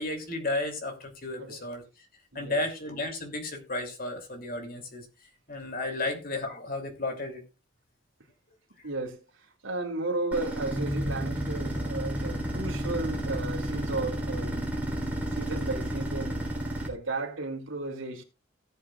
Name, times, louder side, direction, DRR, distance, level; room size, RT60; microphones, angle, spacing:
voice 1, 0.0-1.8 2.3-5.0 5.5-7.4, left 2 dB, 45° left, 2.8 m, -33 dB
voice 2, 2.3-2.6 8.8-9.2 9.6-14.7 15.3-18.2, right 2 dB, 85° right, 2.7 m, -34 dB
sound 1, 10.3-16.9, right 1 dB, 10° right, 3.6 m, -31 dB
18.0 x 7.7 x 2.4 m
head